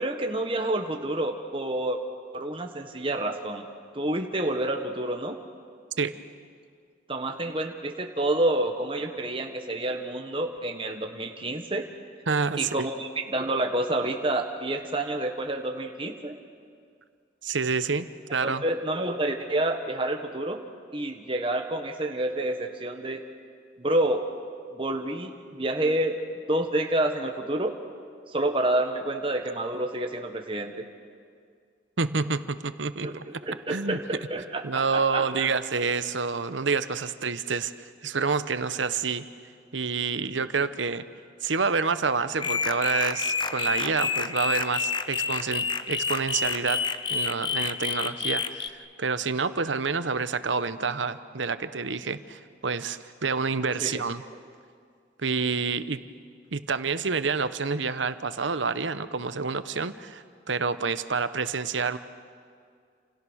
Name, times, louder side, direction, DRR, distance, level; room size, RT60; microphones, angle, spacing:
voice 1, 0.0-2.0 2.3-3.7 3.9-5.4 7.1-11.9 12.6-16.4 18.4-20.6 20.9-23.2 23.8-24.2 24.7-26.2 26.5-27.8 28.3-30.9 33.0-35.5 53.8-54.0, right 1 dB, 30° right, 4 dB, 1.4 m, -28 dB
voice 2, 12.3-12.9 17.4-18.6 32.0-33.2 33.7-34.0 34.6-39.3 39.7-41.0 41.4-46.8 47.1-54.2 55.2-56.0 56.5-62.0, right 4 dB, 85° right, 12 dB, 1.0 m, -28 dB
sound 1, 42.4-48.7, left 5 dB, 25° left, 0.8 m, -29 dB
29.5 x 28.0 x 6.5 m, 2.2 s
head